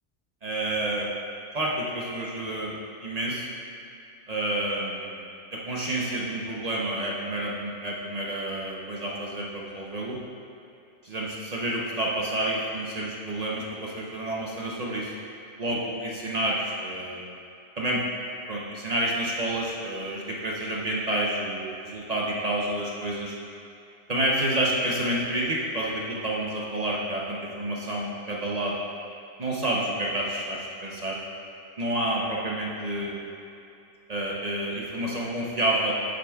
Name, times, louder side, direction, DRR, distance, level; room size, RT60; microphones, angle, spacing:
voice 1, 0.4-1.1 1.5-3.5 4.3-10.2 11.0-15.1 15.6-17.3 17.8-18.0 18.5-23.3 24.1-28.8 29.4-31.2 31.8-33.2 34.1-35.9, right 1 dB, 40° right, -3 dB, 0.8 m, -29 dB
8.6 x 7.6 x 2.3 m, 2.7 s
omnidirectional pair, 1.2 m